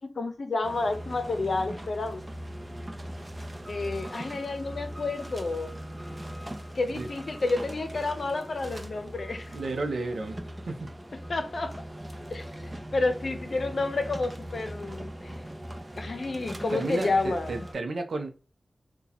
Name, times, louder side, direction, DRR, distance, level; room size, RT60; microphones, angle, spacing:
voice 1, 0.0-2.2 3.7-5.7 6.7-9.6 11.3-11.8 12.3-12.5 12.9-15.4 16.0-17.7, left 3 dB, 65° left, 0.6 m, -30 dB
sound 1, 0.6-17.7, equal, 25° right, 0.6 m, -40 dB
voice 2, 9.5-10.9 16.7-18.3, right 2 dB, 90° right, 0.5 m, -32 dB
2.8 x 2.2 x 3.9 m
wide cardioid pair, 90°, 0 cm